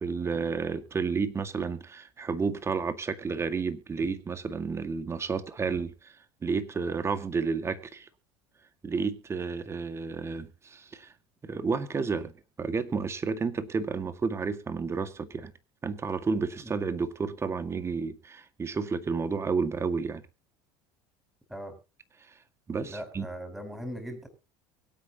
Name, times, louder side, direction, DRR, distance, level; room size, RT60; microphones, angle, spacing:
voice 1, 0.0-6.1 6.4-8.1 8.8-11.1 11.4-12.3 12.6-15.5 15.8-20.2 22.7-23.3, right 5 dB, 25° right, 2.0 m, -31 dB
voice 2, 22.8-24.3, equal, 5° right, 5.7 m, -39 dB
23.5 x 8.6 x 2.9 m
supercardioid pair, 100°, 11 cm